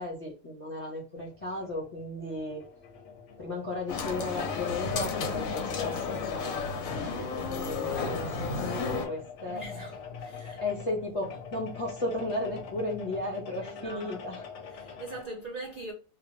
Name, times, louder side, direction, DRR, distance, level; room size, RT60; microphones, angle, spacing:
voice 1, 0.0-2.6 3.4-9.9 10.5-14.4, left 2 dB, 35° left, 0.6 m, -35 dB
sound 1, 1.1-15.2, left 5 dB, 65° left, 0.9 m, -46 dB
sound 2, 3.9-9.1, left 4 dB, 90° left, 1.1 m, -32 dB
voice 2, 9.5-10.6 13.6-14.2 14.6-15.9, right 2 dB, 60° right, 0.4 m, -42 dB
2.3 x 2.2 x 3.0 m
omnidirectional pair, 1.4 m